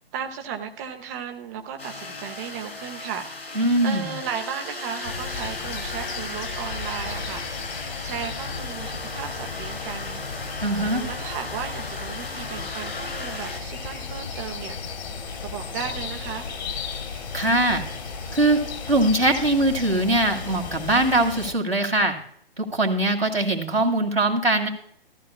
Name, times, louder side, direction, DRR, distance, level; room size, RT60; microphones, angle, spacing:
voice 1, 0.1-10.2 10.7-14.8 15.4-16.5, right 8 dB, 15° right, 5 dB, 0.6 m, -35 dB
sound 1, 1.8-13.6, left 2 dB, 80° left, 1.9 m, -37 dB
voice 2, 3.5-4.1 10.6-11.0 17.3-17.9 18.3-18.6 18.9-22.1 22.6-24.7, right 1 dB, 90° right, 1 dB, 2.1 m, -21 dB
sound 2, 5.0-21.5, left 5 dB, 45° left, 1.8 m, -34 dB
14.5 x 13.0 x 2.2 m, 0.64 s
figure-of-eight pair, 130°, 29 cm